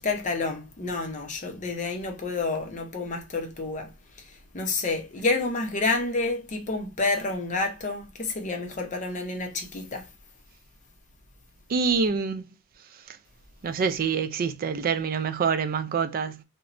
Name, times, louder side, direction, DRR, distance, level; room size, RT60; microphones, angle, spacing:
voice 1, 0.0-10.1, left 3 dB, 35° left, 0.6 m, -29 dB
voice 2, 11.7-12.4 13.1-13.2 13.6-16.4, right 5 dB, 40° right, 0.3 m, -26 dB
2.9 x 2.1 x 2.5 m
head